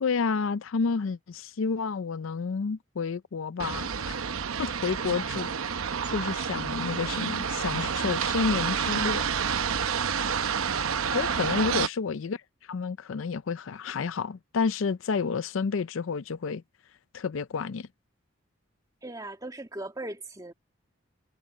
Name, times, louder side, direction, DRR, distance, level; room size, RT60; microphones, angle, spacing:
voice 1, 0.0-4.1 4.6-9.2 11.1-12.4 12.7-16.6 17.1-17.9, left 5 dB, 70° left, 0.5 m, -30 dB
sound 1, 3.6-11.9, right 6 dB, 85° right, 0.8 m, -29 dB
voice 2, 11.1-11.5 19.0-20.5, right 1 dB, 15° right, 2.1 m, -39 dB
head